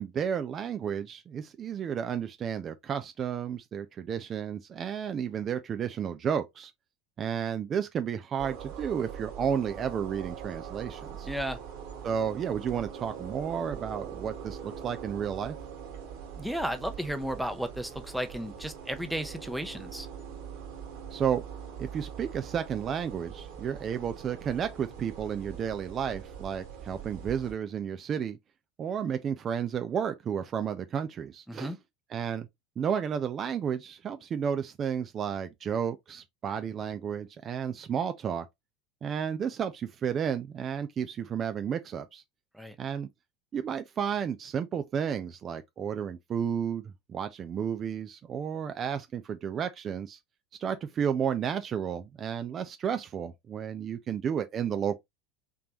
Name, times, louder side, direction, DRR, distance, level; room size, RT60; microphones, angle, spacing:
voice 1, 0.0-6.7 7.2-11.3 12.0-15.6 21.1-21.4 21.8-28.4 28.8-31.7 32.1-32.5 32.8-38.5 39.0-42.2 42.8-43.1 43.5-50.2 50.6-55.0, right 8 dB, 30° right, 0.5 m, -32 dB
sound 1, 8.4-27.5, right 8 dB, 60° right, 1.5 m, -42 dB
voice 2, 11.2-11.6 16.4-20.1 31.5-31.8 42.5-42.8, equal, ahead, 0.7 m, -34 dB
3.9 x 3.3 x 2.9 m
figure-of-eight pair, 75°, 0 cm